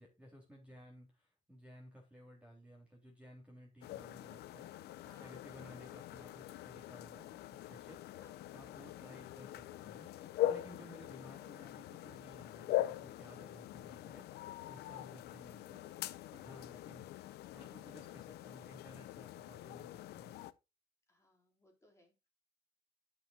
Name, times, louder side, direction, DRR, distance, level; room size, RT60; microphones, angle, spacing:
voice 1, 0.0-8.2 8.5-17.1 17.5-20.3, equal, 5° right, -1 dB, 3.2 m, -57 dB
sound 1, 3.8-20.5, left 13 dB, 75° left, 0.6 m, -43 dB
voice 2, 5.0-5.9 8.2-8.6 21.1-22.3, left 1 dB, 15° left, 0 dB, 4.0 m, -68 dB
12.0 x 6.3 x 2.4 m, 0.26 s
cardioid pair, 110°, 17 cm